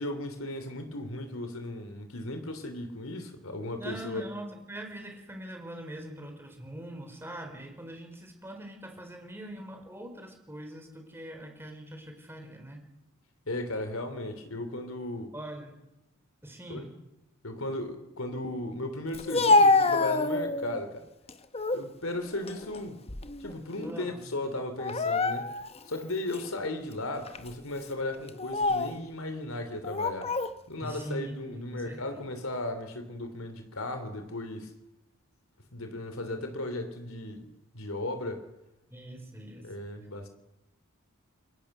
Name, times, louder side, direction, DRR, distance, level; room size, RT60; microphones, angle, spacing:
voice 1, 0.0-4.2 13.5-15.3 16.7-16.9 17.4-21.1 21.7-23.0 23.4-25.5 25.9-30.3 30.7-34.7 35.7-38.4 39.6-40.3, left 1 dB, 75° left, 8 dB, 3.2 m, -36 dB
voice 2, 3.7-12.8 15.3-15.8 16.4-17.0 23.8-24.2 30.8-32.3 38.9-39.9, right 1 dB, 10° right, 4 dB, 4.5 m, -42 dB
Speech, 19.1-20.8 21.3-21.9 22.3-23.5 23.8-24.0 24.8-25.8 26.3-26.5 27.3-27.5 28.3-29.0 29.8-30.5, left 3 dB, 25° left, 1.1 m, -26 dB
28.0 x 22.0 x 6.7 m, 0.92 s
head